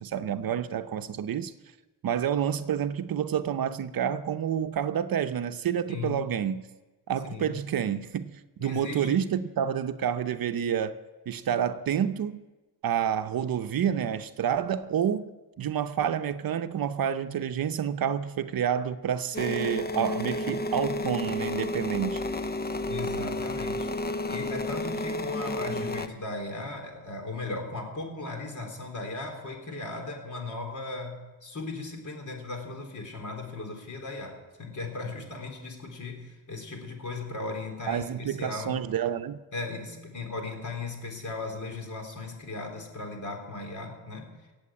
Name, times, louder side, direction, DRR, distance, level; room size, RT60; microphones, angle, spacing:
voice 1, 0.0-1.5 2.0-6.7 7.1-11.0 11.3-12.4 12.8-15.3 15.6-22.2 37.9-39.4, right 9 dB, 60° right, 0.8 m, -29 dB
voice 2, 5.9-6.2 7.2-7.6 8.6-9.2 22.9-23.9 24.3-38.8 39.5-44.3, left 3 dB, 45° left, 3.9 m, -37 dB
sound 1, 19.3-26.1, left 1 dB, 25° left, 0.8 m, -31 dB
17.0 x 8.0 x 8.6 m
cardioid pair, 95°, 41 cm